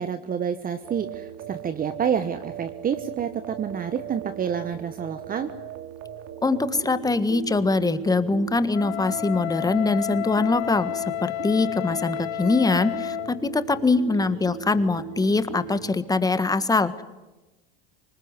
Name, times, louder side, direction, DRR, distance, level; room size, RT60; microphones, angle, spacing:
voice 1, 0.0-5.5, right 7 dB, 30° right, 10 dB, 1.3 m, -28 dB
sound 1, 0.8-16.0, right 10 dB, 55° right, 2.8 m, -39 dB
voice 2, 6.4-17.0, left 3 dB, 10° left, 12 dB, 1.6 m, -23 dB
Wind instrument woodwind instrument, 8.7-13.3, left 18 dB, 55° left, 1.7 m, -31 dB
25.5 x 20.0 x 9.8 m, 1.1 s
supercardioid pair, 110°, 30 cm